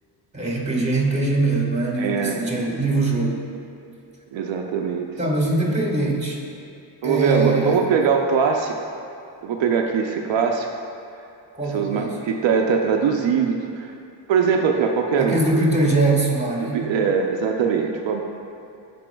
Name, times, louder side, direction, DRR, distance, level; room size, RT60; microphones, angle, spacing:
voice 1, 0.3-3.5 5.2-6.4 7.0-7.8 11.5-12.2 15.2-16.8, right 2 dB, 15° right, -2 dB, 1.4 m, -22 dB
voice 2, 2.0-2.4 4.3-5.1 5.6-5.8 7.0-8.8 9.4-10.7 11.7-13.9 14.3-15.4 16.6-18.2, right 6 dB, 85° right, 2 dB, 0.5 m, -21 dB
11.0 x 4.2 x 2.2 m, 2.6 s
cardioid pair, 85°, 44 cm